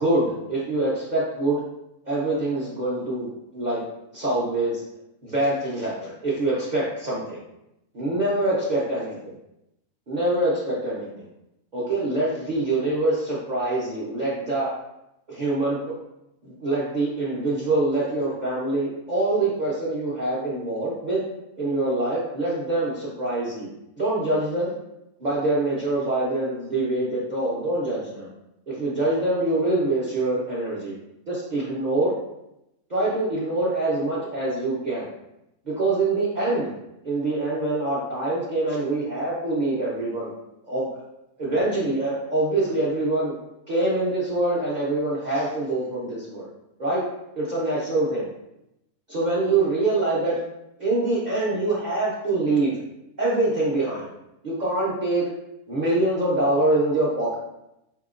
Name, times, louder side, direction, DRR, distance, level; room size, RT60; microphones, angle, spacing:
voice 1, 0.0-1.6 2.0-3.8 4.1-4.8 5.2-7.4 7.9-9.3 10.1-11.2 11.7-14.7 15.3-15.8 16.4-21.2 21.6-24.7 25.2-28.3 28.7-30.9 31.3-32.1 32.9-35.1 35.7-36.7 37.0-40.3 40.7-41.0 41.4-43.3 43.7-46.5 46.8-47.0 47.4-48.3 49.1-50.4 50.8-52.8 53.2-54.1 54.4-55.3 55.7-57.4, right 2 dB, 45° right, -6 dB, 0.6 m, -25 dB
4.2 x 2.8 x 2.5 m, 0.87 s
omnidirectional pair, 1.5 m